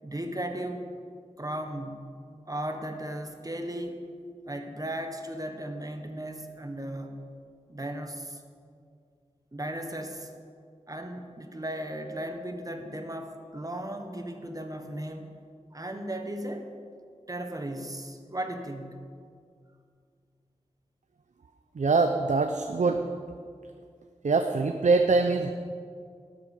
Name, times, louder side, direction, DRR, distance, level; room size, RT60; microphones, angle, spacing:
voice 1, 0.0-0.9 1.4-2.1 2.5-4.1 4.4-7.2 7.7-8.4 9.5-10.3 10.9-15.3 15.7-16.7 17.3-19.1, right 1 dB, 30° right, 5 dB, 1.5 m, -36 dB
voice 2, 21.7-23.0 24.2-25.5, right 4 dB, 70° right, 6 dB, 0.7 m, -23 dB
18.0 x 8.2 x 6.9 m, 2.2 s
wide cardioid pair, 60°, 13 cm